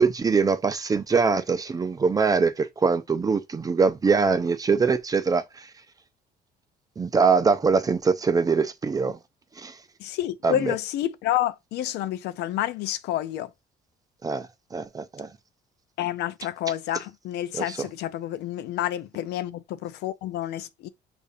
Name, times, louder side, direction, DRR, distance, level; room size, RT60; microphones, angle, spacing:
voice 1, 0.0-5.7 7.0-9.2 9.6-9.8 10.4-10.7 14.2-15.3 17.5-17.9, right 5 dB, 20° right, 0.4 m, -23 dB
voice 2, 10.0-13.5 16.0-20.9, left 12 dB, 80° left, 0.5 m, -29 dB
6.5 x 2.6 x 2.7 m
cardioid pair, 110°, 17 cm